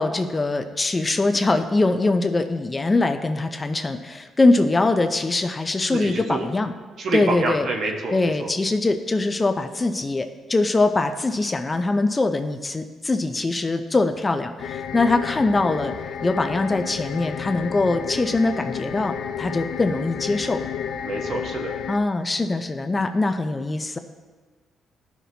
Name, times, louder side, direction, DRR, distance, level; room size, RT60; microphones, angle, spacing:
voice 1, 0.0-6.7 7.1-7.7 8.1-15.9 16.2-20.6 21.9-24.0, left 2 dB, 25° left, 7 dB, 0.5 m, -22 dB
voice 2, 5.9-6.5 7.0-8.5 21.0-21.7, right 3 dB, 60° right, 1 dB, 1.1 m, -27 dB
sound 1, 14.6-22.0, left 8 dB, 75° left, 0.5 m, -32 dB
12.0 x 5.9 x 2.8 m, 1.3 s
cardioid pair, 90°, 0 cm